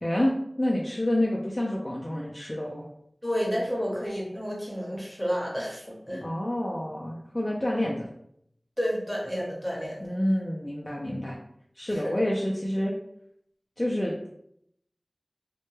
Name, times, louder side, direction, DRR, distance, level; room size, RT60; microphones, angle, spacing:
voice 1, 0.0-2.9 6.2-8.1 10.0-11.4 11.8-12.9 13.8-14.3, left 1 dB, 30° left, -3 dB, 0.3 m, -28 dB
voice 2, 3.2-6.2 8.8-10.1 11.9-12.2, equal, ahead, -4 dB, 0.9 m, -30 dB
2.1 x 2.1 x 3.0 m, 0.73 s
wide cardioid pair, 40°, 0 cm